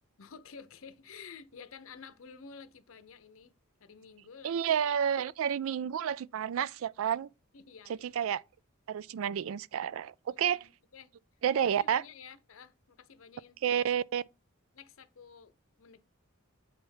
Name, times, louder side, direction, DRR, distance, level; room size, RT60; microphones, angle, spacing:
voice 1, 0.2-3.5 3.8-4.6 7.5-8.1 10.3-11.1 11.5-13.8 14.7-16.0, left 6 dB, 65° left, 0.7 m, -51 dB
voice 2, 4.4-7.3 8.0-8.4 8.9-10.7 11.4-12.0 13.6-14.2, right 8 dB, 65° right, 0.3 m, -30 dB
7.7 x 3.4 x 5.4 m
head